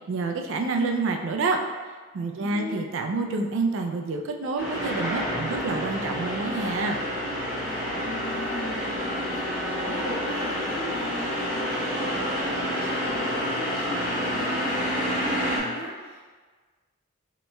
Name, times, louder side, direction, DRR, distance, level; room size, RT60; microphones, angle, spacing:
voice 1, 0.1-1.6 2.1-7.0, right 3 dB, 60° right, 4 dB, 0.3 m, -28 dB
voice 2, 2.4-2.8 7.5-16.2, equal, 75° left, -7 dB, 1.3 m, -39 dB
sound 1, 4.6-15.6, equal, 10° right, 0.9 m, -28 dB
5.2 x 3.0 x 2.2 m, 1.4 s
head